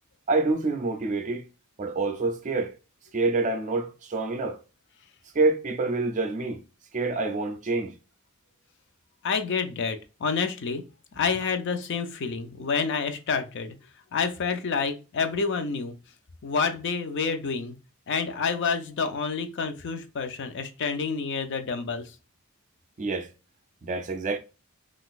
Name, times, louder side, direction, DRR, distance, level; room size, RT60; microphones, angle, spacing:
voice 1, 0.3-1.4 1.8-2.7 3.1-4.6 5.3-6.6 6.9-7.9 23.0-23.3 23.8-24.4, right 3 dB, 35° right, 0.4 m, -27 dB
voice 2, 9.2-10.8 11.2-13.7 14.1-15.9 16.4-17.7 18.1-22.0, left 5 dB, 55° left, 0.4 m, -28 dB
3.7 x 2.4 x 2.4 m
head